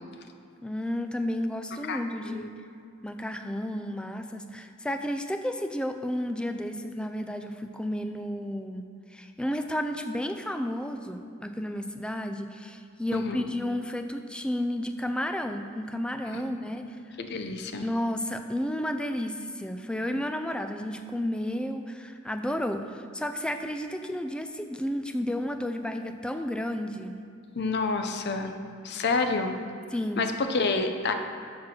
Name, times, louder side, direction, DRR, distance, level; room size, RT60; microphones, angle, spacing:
voice 1, 0.6-2.5 3.0-8.8 9.1-17.2 17.8-27.2 29.9-30.3, left 1 dB, 5° left, 7 dB, 0.4 m, -32 dB
voice 2, 1.9-2.5 13.1-13.5 16.3-16.4 17.2-17.8 27.6-28.5 28.8-29.5 30.2-31.1, left 3 dB, 55° left, 7 dB, 0.6 m, -28 dB
7.3 x 6.2 x 5.9 m, 2.4 s
head